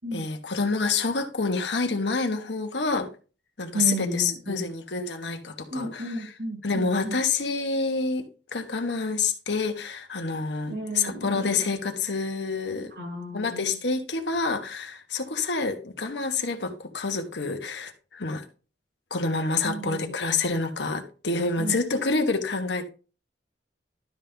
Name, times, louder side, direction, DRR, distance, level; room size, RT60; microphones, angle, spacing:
voice 1, 0.1-3.1 3.6-6.3 6.6-8.3 8.5-12.9 13.3-18.4 19.1-22.9, left 4 dB, 80° left, 1.4 m, -28 dB
voice 2, 3.7-4.7 5.7-7.2 10.7-11.5 12.9-13.8 19.6-20.1 21.6-21.8, right 2 dB, 65° right, 5.4 m, -33 dB
12.0 x 5.5 x 3.4 m
head